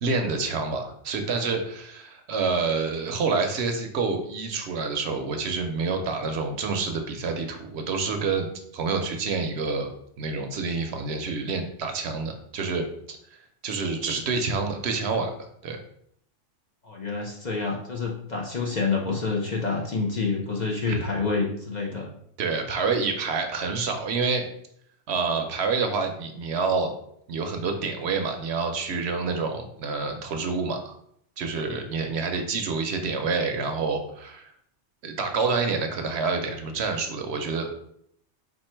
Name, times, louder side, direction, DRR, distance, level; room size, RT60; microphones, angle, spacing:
voice 1, 0.0-8.5 8.7-9.9 10.2-13.2 13.6-15.3 15.6-15.8 20.9-21.0 22.4-24.5 25.1-26.9 27.3-31.0 31.4-34.5 35.0-37.7, right 4 dB, 65° right, 5 dB, 0.8 m, -28 dB
voice 2, 16.8-22.1, left 4 dB, 45° left, -1 dB, 0.6 m, -28 dB
4.4 x 2.4 x 4.3 m, 0.70 s
omnidirectional pair, 1.3 m